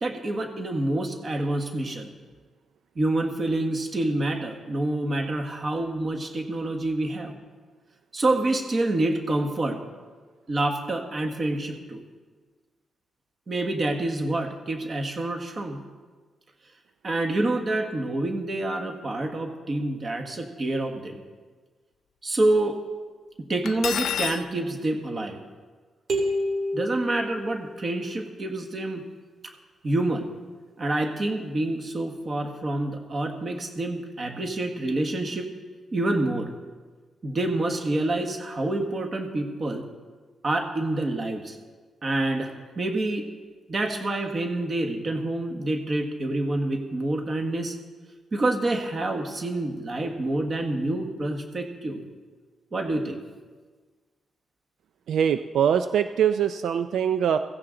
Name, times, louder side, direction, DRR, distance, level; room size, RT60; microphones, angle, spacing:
voice 1, 0.0-2.1 2.9-7.4 8.1-9.8 10.5-12.0 13.5-15.8 17.0-21.2 22.2-22.8 23.4-25.4 26.7-29.0 29.8-30.3 30.8-35.5 35.9-36.5 37.2-39.9 40.4-41.6 42.0-43.2 43.7-47.8 48.3-52.0 52.7-53.2, right 2 dB, 30° right, 4 dB, 1.4 m, -27 dB
Cutlery silverware, 23.7-24.4, left 9 dB, 80° left, 0.5 m, -28 dB
sound 1, 26.1-28.0, equal, 50° right, 2.8 m, -29 dB
voice 2, 55.1-57.4, right 8 dB, 70° right, 9 dB, 0.4 m, -23 dB
16.0 x 16.0 x 3.8 m, 1.4 s
wide cardioid pair, 170°, 0 cm